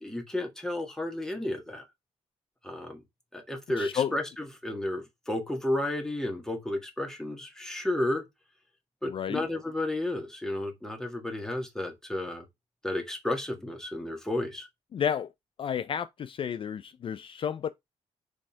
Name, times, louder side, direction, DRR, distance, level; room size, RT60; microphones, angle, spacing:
voice 1, 0.0-1.8 2.6-3.0 3.3-8.3 9.0-12.4 12.8-14.7, left 1 dB, 5° left, 1.7 m, -32 dB
voice 2, 3.8-4.1 9.1-9.4 14.9-15.3 15.6-17.7, left 8 dB, 50° left, 0.4 m, -31 dB
5.1 x 3.5 x 5.5 m
cardioid pair, 130°, 12 cm